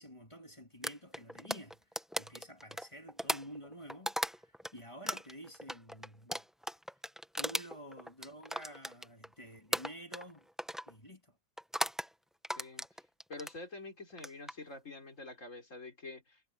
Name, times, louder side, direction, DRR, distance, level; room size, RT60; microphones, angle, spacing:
voice 1, 0.0-1.8 2.2-6.4 7.4-10.5 10.9-11.4, equal, 20° left, 2.2 m, -50 dB
sound 1, 0.8-4.7 5.1-9.3 9.7-10.3 10.6-10.9 11.6-12.1 12.4-13.6 14.1-14.5, equal, ahead, 0.8 m, -37 dB
voice 2, 12.6-12.9 13.3-16.4, left 2 dB, 65° left, 4.7 m, -47 dB
omnidirectional pair, 1.4 m